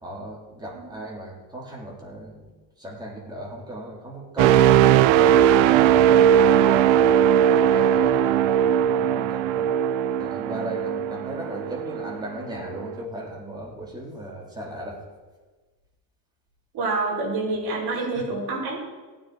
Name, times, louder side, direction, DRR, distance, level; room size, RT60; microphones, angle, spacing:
voice 1, 0.0-2.5 2.8-9.7 10.2-15.0 18.1-18.2, right 1 dB, 10° right, -3 dB, 2.9 m, -36 dB
sound 1, 4.4-12.2 12.6-12.9, right 10 dB, 70° right, 0.7 m, -19 dB
voice 2, 16.7-18.8, right 3 dB, 50° right, -3 dB, 4.9 m, -27 dB
15.5 x 9.6 x 4.6 m, 1.3 s
cardioid pair, 165°, 50 cm